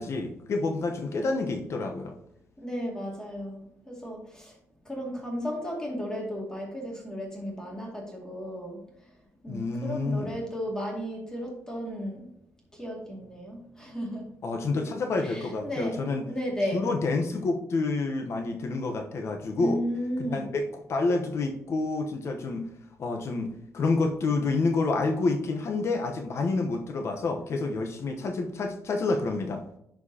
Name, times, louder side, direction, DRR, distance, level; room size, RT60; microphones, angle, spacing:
voice 1, 0.0-2.1 9.5-10.4 14.4-16.2 16.7-19.8 20.2-22.7 23.0-29.6, left 3 dB, 50° left, 4 dB, 1.0 m, -28 dB
voice 2, 2.6-4.6 4.9-8.8 9.4-12.3 12.7-14.3 15.2-16.0 16.3-16.8 19.6-20.4, equal, 10° left, -2 dB, 2.3 m, -34 dB
11.0 x 4.6 x 2.9 m, 0.77 s
cardioid pair, 125°, 6 cm